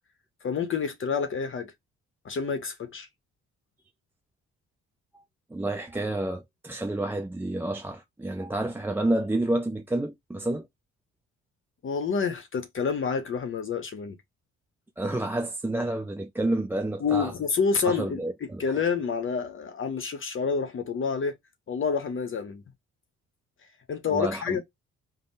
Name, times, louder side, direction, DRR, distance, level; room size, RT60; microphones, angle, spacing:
voice 1, 0.4-1.7 2.2-3.1 11.8-14.2 17.0-21.4 21.7-22.6 23.9-24.6, left 5 dB, 45° left, 0.7 m, -28 dB
voice 2, 5.5-10.7 15.0-17.3 17.8-18.6 24.1-24.6, right 1 dB, 10° right, 0.4 m, -29 dB
3.5 x 2.0 x 4.1 m
cardioid pair, 90°, 30 cm